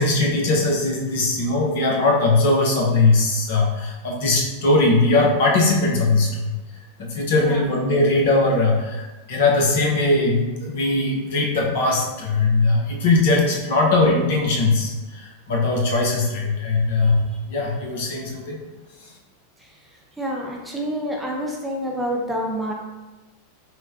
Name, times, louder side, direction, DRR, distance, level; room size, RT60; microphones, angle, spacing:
voice 1, 0.0-6.6 7.0-18.6, left 2 dB, 55° left, -1 dB, 0.8 m, -20 dB
voice 2, 7.4-7.7 20.2-22.7, equal, 5° right, -1 dB, 0.6 m, -27 dB
5.7 x 2.1 x 2.7 m, 1.1 s
figure-of-eight pair, 90°, 0 cm